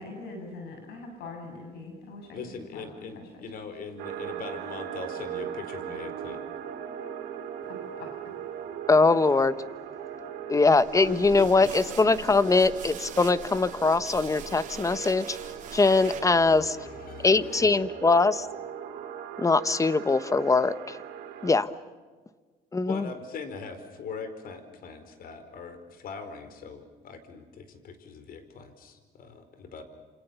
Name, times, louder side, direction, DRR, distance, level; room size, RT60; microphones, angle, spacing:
voice 1, 0.0-2.3 2.7-2.9 8.0-8.1, left 3 dB, 75° left, 3 dB, 7.9 m, -41 dB
voice 2, 2.3-6.4 11.0-11.7 16.0-17.7 22.9-29.8, left 5 dB, 60° left, 10 dB, 4.6 m, -41 dB
sound 1, 4.0-21.5, right 9 dB, 80° right, 4.4 m, -39 dB
voice 3, 8.9-9.5 10.5-15.4 15.7-16.8 17.2-18.5 19.4-21.0 21.4-21.7 22.7-23.0, left 3 dB, 20° left, 14 dB, 1.2 m, -22 dB
sound 2, 10.7-16.6, right 7 dB, 50° right, 4.1 m, -44 dB
28.0 x 28.0 x 7.0 m, 1.4 s
cardioid pair, 110°, 17 cm